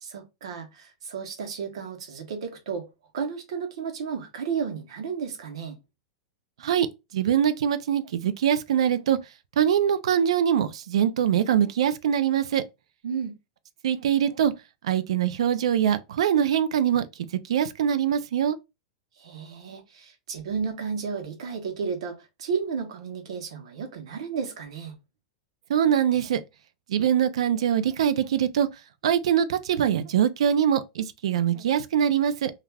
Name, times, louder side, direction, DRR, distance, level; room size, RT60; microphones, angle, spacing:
voice 1, 0.0-2.9 3.1-5.8 13.0-13.4 19.2-25.0, right 6 dB, 75° right, 0.8 m, -33 dB
voice 2, 7.1-9.2 9.6-12.6 13.8-14.5 14.8-17.0 17.5-18.6 25.7-26.4 26.9-28.7 29.0-32.5, right 9 dB, 90° right, 0.4 m, -23 dB
2.3 x 2.2 x 3.2 m
supercardioid pair, 175°, 3 cm